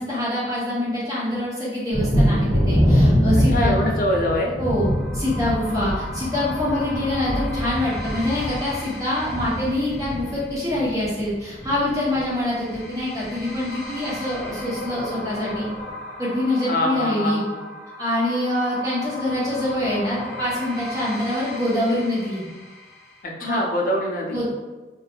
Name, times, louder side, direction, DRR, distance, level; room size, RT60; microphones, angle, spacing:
voice 1, 0.0-3.9 4.6-15.7 16.2-17.4 18.0-22.4 23.4-23.6 24.3-24.4, left 1 dB, 20° right, -9 dB, 1.1 m, -25 dB
Thunder, 1.9-11.3 11.6-12.3 12.7-12.8 13.2-13.4, equal, 55° right, 1.3 m, -23 dB
voice 2, 3.5-4.5 16.7-17.6 23.4-24.4, left 1 dB, 50° left, -1 dB, 0.5 m, -24 dB
sound 1, 4.6-23.2, left 1 dB, ahead, 0.7 m, -37 dB
2.6 x 2.3 x 3.5 m, 1.2 s
head